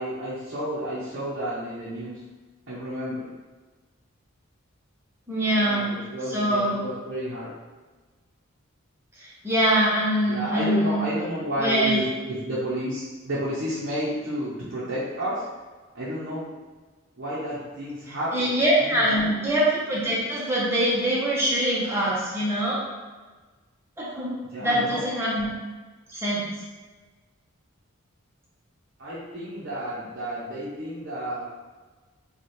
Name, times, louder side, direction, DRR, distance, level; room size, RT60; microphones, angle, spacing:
voice 1, 0.0-2.2 2.7-3.3 5.6-7.5 10.3-15.4 15.9-16.5 17.1-19.3 24.5-25.1 29.0-31.4, equal, 55° right, -9 dB, 0.8 m, -31 dB
voice 2, 5.3-5.8 6.3-6.8 9.2-11.0 11.6-12.0 18.1-22.8 24.0-25.5 26.1-26.5, right 1 dB, 10° right, -7 dB, 1.0 m, -24 dB
3.3 x 2.4 x 4.2 m, 1.3 s
head